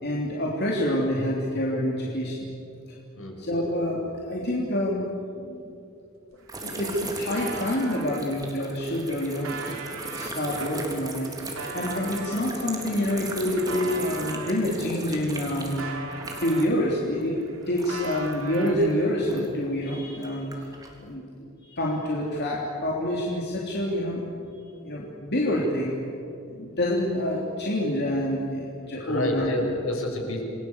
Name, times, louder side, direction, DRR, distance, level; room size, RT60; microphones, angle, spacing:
voice 1, 0.0-2.5 3.4-5.6 6.6-15.9 16.3-17.4 17.7-20.5 21.0-21.2 21.6-24.2 24.7-25.9 26.5-29.5, left 1 dB, 55° left, -3 dB, 3.5 m, -27 dB
voice 2, 3.2-3.5 29.0-30.4, left 1 dB, 70° left, 2 dB, 5.8 m, -29 dB
sound 1, 6.3-6.4 6.6-8.2 8.8-14.6 15.1-17.0 17.3-19.1, right 4 dB, 85° right, 3.5 m, -39 dB
sound 2, 6.5-16.9 17.1-19.6 20.2-21.0, right 2 dB, 20° right, 3.4 m, -38 dB
28.5 x 21.5 x 8.3 m, 2.6 s
head